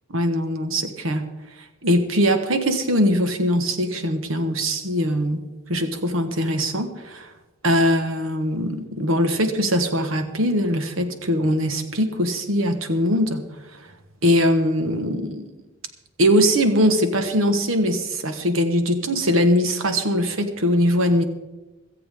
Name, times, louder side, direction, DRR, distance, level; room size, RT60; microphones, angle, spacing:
voice 1, 0.1-1.2 1.8-5.4 5.7-7.3 7.6-13.4 14.2-15.4 16.2-21.2, equal, 90° right, 7 dB, 1.4 m, -21 dB
16.5 x 14.0 x 3.7 m, 1.1 s
head